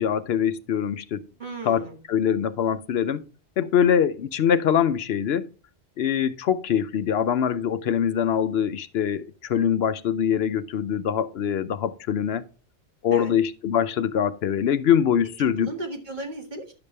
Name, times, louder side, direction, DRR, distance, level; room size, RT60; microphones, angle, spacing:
voice 1, 0.0-1.2 1.6-3.2 3.6-5.5 6.0-12.4 13.0-15.7, left 8 dB, 75° left, 0.9 m, -23 dB
voice 2, 1.4-2.0 13.1-13.3 15.4-16.7, right 2 dB, 45° right, 2.0 m, -35 dB
10.5 x 6.9 x 3.3 m
omnidirectional pair, 1.1 m